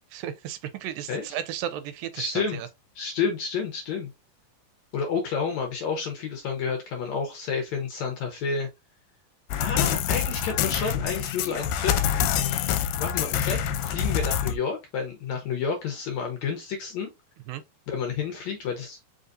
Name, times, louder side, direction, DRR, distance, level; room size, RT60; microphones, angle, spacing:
voice 1, 0.1-2.7 17.5-17.6, right 10 dB, 80° right, 2.3 m, -34 dB
voice 2, 2.2-2.6 3.0-4.1 4.9-8.7 9.6-12.0 13.0-17.1 17.9-19.0, left 5 dB, 70° left, 1.8 m, -30 dB
sound 1, 9.5-14.6, left 9 dB, 85° left, 2.3 m, -26 dB
5.2 x 3.9 x 2.5 m
omnidirectional pair, 4.1 m